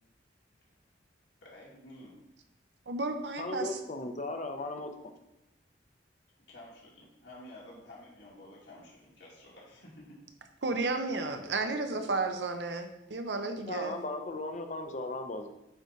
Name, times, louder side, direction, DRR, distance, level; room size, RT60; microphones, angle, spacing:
voice 1, 1.4-2.2 6.4-10.2, left 1 dB, 80° left, -5 dB, 2.2 m, -51 dB
voice 2, 2.9-3.8 10.6-13.9, right 3 dB, 70° right, 6 dB, 0.7 m, -33 dB
voice 3, 3.4-5.1 13.7-15.5, left 2 dB, 40° left, 6 dB, 0.7 m, -37 dB
8.7 x 3.9 x 4.1 m, 0.88 s
head